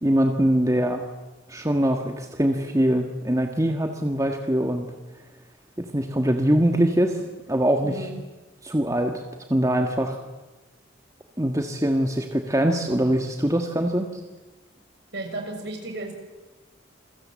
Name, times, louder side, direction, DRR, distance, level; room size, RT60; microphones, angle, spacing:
voice 1, 0.0-1.0 1.5-4.9 5.8-7.2 7.5-8.0 8.6-9.2 9.5-10.2 11.4-14.1, right 1 dB, 15° right, 4 dB, 1.7 m, -23 dB
voice 2, 15.1-16.1, right 2 dB, 55° right, 4 dB, 6.4 m, -33 dB
28.5 x 23.5 x 7.7 m, 1.2 s
head